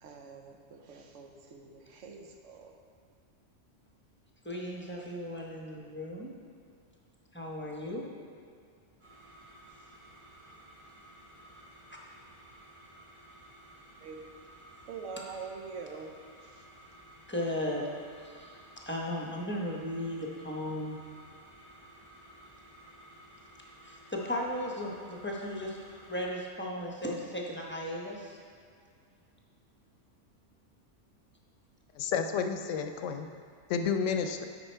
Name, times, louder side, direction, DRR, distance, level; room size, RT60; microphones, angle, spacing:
voice 1, 0.0-2.8 14.0-14.2 14.9-16.2 16.4-16.7, right 5 dB, 85° right, 3 dB, 1.1 m, -45 dB
voice 2, 4.4-6.3 7.3-8.1 17.3-17.9 18.2-18.5 18.9-21.0 23.8-28.4, left 1 dB, 10° left, -2 dB, 0.7 m, -36 dB
sound 1, 9.0-26.2, right 1 dB, 55° right, 2.5 m, -55 dB
voice 3, 32.0-33.3 33.7-34.5, left 6 dB, 85° left, 7 dB, 0.9 m, -30 dB
8.1 x 5.4 x 4.4 m, 2.2 s
omnidirectional pair, 1.2 m